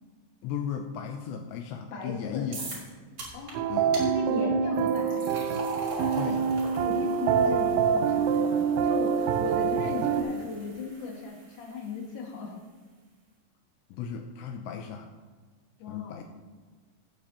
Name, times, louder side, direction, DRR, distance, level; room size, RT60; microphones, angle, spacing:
voice 1, 0.4-2.6 3.7-4.0 6.2-6.5 13.9-15.1 15.9-16.2, left 8 dB, 85° left, 4 dB, 2.7 m, -35 dB
voice 2, 1.9-2.8 3.3-3.7 4.0-5.3 6.8-12.5 15.8-16.2, left 4 dB, 55° left, -1 dB, 2.7 m, -36 dB
sound 1, 2.5-2.9 3.2-3.5 3.9-4.1 4.7-11.9, right 2 dB, 35° right, 3.4 m, -42 dB
sound 2, 3.5-10.2, right 7 dB, 90° right, 3.1 m, -26 dB
15.5 x 8.5 x 2.9 m, 1.5 s
omnidirectional pair, 5.2 m